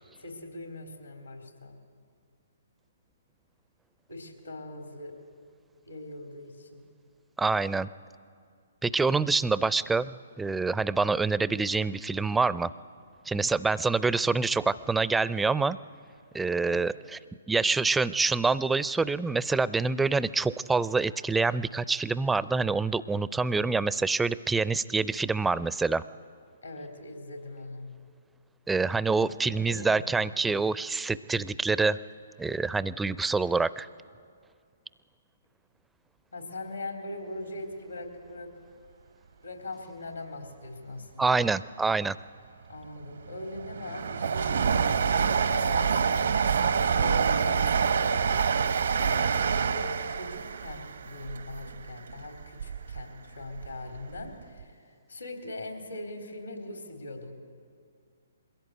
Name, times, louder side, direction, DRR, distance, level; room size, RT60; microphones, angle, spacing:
voice 1, 0.2-1.8 4.1-5.2 5.8-6.8 16.7-16.8 26.6-27.9 29.1-30.3 36.3-38.5 39.4-41.4 42.7-48.5 49.0-57.3, left 2 dB, 85° left, 3 dB, 3.6 m, -41 dB
voice 2, 7.4-7.9 8.8-12.7 13.3-15.8 16.3-17.2 17.5-26.0 28.7-32.0 32.4-33.9 41.2-42.2, right 4 dB, 5° right, 17 dB, 0.4 m, -26 dB
Train, 42.8-53.0 53.4-54.3 54.6-54.7, right 6 dB, 70° right, 0.8 m, -27 dB
22.0 x 16.0 x 8.1 m, 2.2 s
figure-of-eight pair, 130°, 0 cm